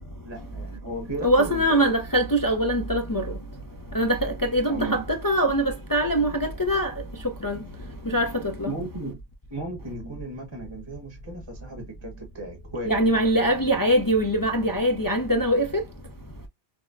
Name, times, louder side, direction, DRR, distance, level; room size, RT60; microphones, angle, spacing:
voice 1, 0.2-2.0 4.7-5.0 8.7-9.2 9.5-13.1 13.4-13.7, right 2 dB, 25° right, 1.0 m, -35 dB
voice 2, 1.2-3.3 3.9-7.0 7.4-7.6 8.1-8.7 12.9-15.8, right 1 dB, 30° left, 0.4 m, -23 dB
6.1 x 2.1 x 2.4 m
omnidirectional pair, 1.1 m